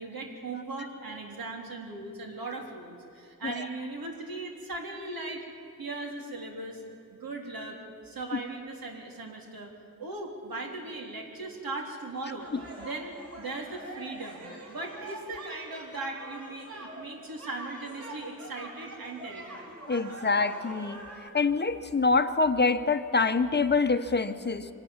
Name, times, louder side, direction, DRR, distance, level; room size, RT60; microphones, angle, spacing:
voice 1, 0.0-5.4 5.8-6.8 7.1-7.8 8.0-9.7 10.0-12.5 12.8-19.7, right 2 dB, 85° right, 1 dB, 3.6 m, -38 dB
sound 1, 12.4-21.3, right 1 dB, 40° right, 5.5 m, -44 dB
voice 2, 19.9-21.0 21.3-24.7, left 4 dB, 30° left, 9 dB, 0.8 m, -25 dB
24.0 x 19.0 x 7.3 m, 2.7 s
wide cardioid pair, 170°, 34 cm